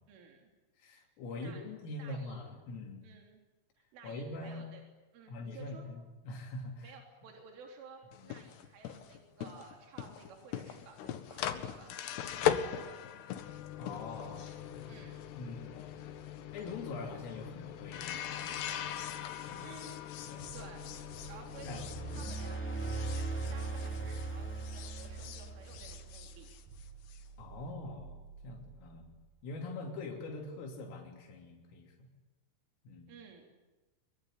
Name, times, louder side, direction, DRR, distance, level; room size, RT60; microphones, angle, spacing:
voice 1, 0.1-0.5 1.4-1.6 2.0-2.6 3.0-3.4 3.8-4.8 5.1-5.9 6.8-12.7 14.9-15.3 19.6-20.0 20.5-20.8 21.3-26.5 33.1-33.5, right 5 dB, 75° right, 2 dB, 6.0 m, -54 dB
voice 2, 0.8-3.1 4.0-4.7 5.3-7.0 8.2-8.3 13.8-16.1 16.5-18.7 19.4-19.7 20.3-20.5 21.2-21.3 21.6-21.8 22.1-22.5 27.4-29.1 29.4-32.1 32.9-33.1, left 2 dB, 90° left, 1 dB, 5.7 m, -44 dB
sound 1, 8.1-24.3 24.6-27.2, left 10 dB, 65° left, 3.2 m, -40 dB
sound 2, 20.4-29.5, right 5 dB, 60° right, 2.3 m, -52 dB
sound 3, 21.5-26.2, right 3 dB, 20° left, 0.3 m, -39 dB
24.5 x 23.5 x 9.9 m, 1.1 s
omnidirectional pair, 5.7 m